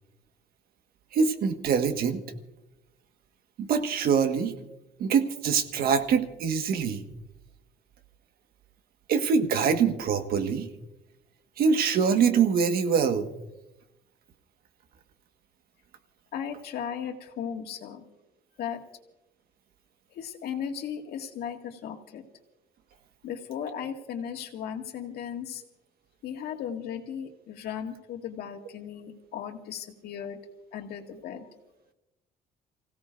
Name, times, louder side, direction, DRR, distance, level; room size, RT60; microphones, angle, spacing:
voice 1, 1.1-2.2 3.6-4.5 5.0-7.0 9.1-10.7 11.6-13.3, right 6 dB, 65° right, 7 dB, 1.6 m, -24 dB
voice 2, 16.3-18.0 18.6-18.8 20.1-22.2 23.2-25.6 26.2-30.4 30.7-31.5, left 8 dB, 70° left, 3 dB, 2.0 m, -36 dB
29.0 x 17.0 x 2.6 m, 0.94 s
cardioid pair, 110°, 17 cm